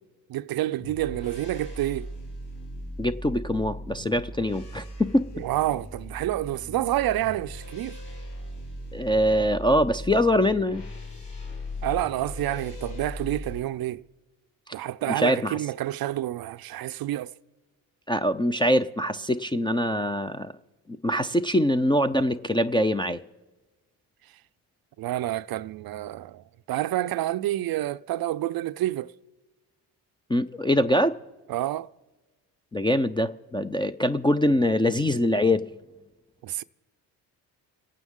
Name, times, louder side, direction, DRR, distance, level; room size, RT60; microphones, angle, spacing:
voice 1, 0.3-2.1 5.4-8.0 11.8-14.0 14.7-17.3 25.0-29.1 31.5-31.9 36.4-36.6, right 14 dB, 50° right, 0.4 m, -28 dB
sound 1, 0.8-13.6, left 1 dB, 60° left, 2.7 m, -38 dB
voice 2, 3.0-5.3 8.9-10.8 15.2-15.6 18.1-20.5 21.0-23.2 30.3-31.2 32.7-35.6, left 1 dB, 10° left, 0.3 m, -23 dB
26.5 x 9.1 x 3.7 m
supercardioid pair, 65°, 47 cm